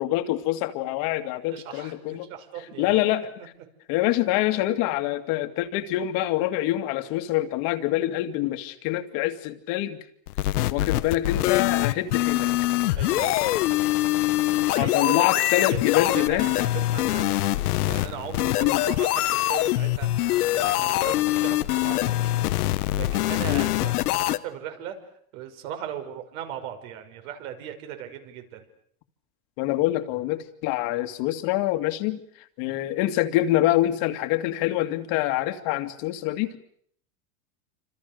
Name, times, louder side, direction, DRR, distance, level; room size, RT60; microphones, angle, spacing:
voice 1, 0.0-2.3 2.8-3.5 3.9-10.0 10.7-12.5 14.8-16.5 18.6-18.8 23.5-23.7 29.6-32.2 32.6-36.6, left 15 dB, 50° left, 8 dB, 2.4 m, -25 dB
voice 2, 1.5-3.0 13.0-13.7 14.1-14.2 14.7-17.6 17.8-22.4 23.0-24.9 25.3-28.6, right 9 dB, 60° right, 6 dB, 5.9 m, -38 dB
sound 1, 10.3-24.4, left 16 dB, 80° left, 1.4 m, -24 dB
28.5 x 26.5 x 6.8 m, 0.66 s
supercardioid pair, 150°, 45 cm